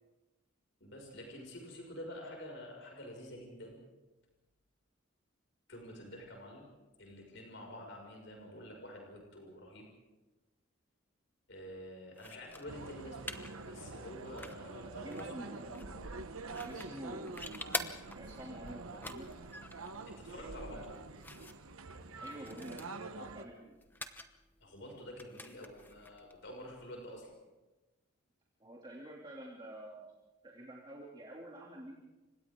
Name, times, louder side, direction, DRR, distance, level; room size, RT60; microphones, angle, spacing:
voice 1, 0.8-3.8 5.7-6.6 7.0-9.8 11.5-15.5 20.1-20.9 24.6-27.3, equal, 60° left, 0 dB, 6.1 m, -48 dB
sound 1, 12.1-27.3, left 2 dB, 10° left, 0.9 m, -48 dB
sound 2, 12.7-23.5, right 3 dB, 90° right, 1.2 m, -46 dB
voice 2, 14.9-15.9 16.6-17.4 18.2-19.3 20.1-20.2 22.2-23.8 28.6-30.1 30.4-32.0, right 1 dB, 20° right, -3 dB, 2.9 m, -48 dB
30.0 x 25.5 x 3.8 m, 1.1 s
head